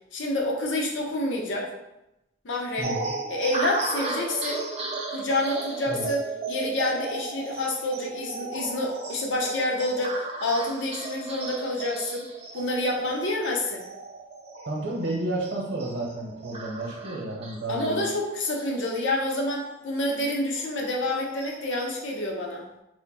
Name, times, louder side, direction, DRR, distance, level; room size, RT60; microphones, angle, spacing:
voice 1, 0.1-1.7 2.4-2.9 3.3-4.6 5.1-6.2 6.5-12.3 12.5-13.8 17.7-22.7, left 1 dB, 65° left, -1 dB, 0.6 m, -28 dB
sound 1, 2.8-19.7 20.1-20.2 20.6-22.2, right 3 dB, 30° right, 0.4 m, -36 dB
voice 2, 2.8-3.1 5.9-6.1 14.7-18.0, right 2 dB, 65° right, -2 dB, 0.8 m, -31 dB
2.6 x 2.1 x 3.9 m, 0.91 s
head